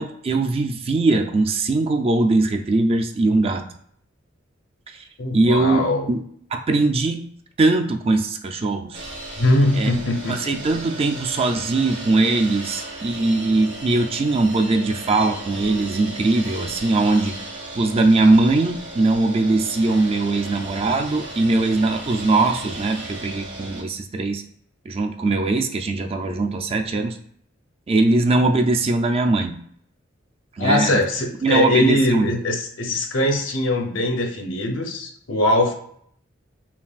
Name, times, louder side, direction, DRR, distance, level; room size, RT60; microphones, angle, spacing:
voice 1, 0.0-3.7 4.9-5.0 5.3-5.8 6.1-6.2 6.5-7.2 7.6-9.0 9.8-9.9 10.3-17.3 17.7-24.4 24.9-27.2 27.9-29.6 30.6-31.0 31.4-32.3, right 2 dB, 30° right, 5 dB, 0.4 m, -20 dB
voice 2, 5.2-6.1 9.4-10.6 30.6-35.7, left 1 dB, 70° left, 2 dB, 0.8 m, -21 dB
sound 1, 8.9-23.8, right 2 dB, 65° right, 1.2 m, -36 dB
5.7 x 2.4 x 2.4 m, 0.65 s
head